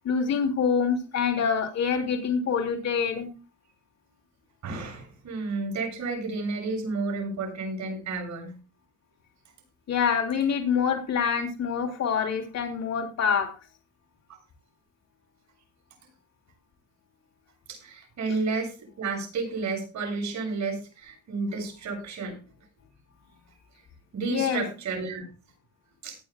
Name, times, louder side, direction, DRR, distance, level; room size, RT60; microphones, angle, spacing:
voice 1, 0.0-3.3 9.9-13.5 24.3-24.6, left 6 dB, 60° left, 3 dB, 2.9 m, -26 dB
voice 2, 4.6-8.5 17.7-22.4 24.1-25.2 26.0-26.2, right 3 dB, 70° right, 2 dB, 7.5 m, -31 dB
18.5 x 9.6 x 2.3 m, 0.33 s
cardioid pair, 90°, 30 cm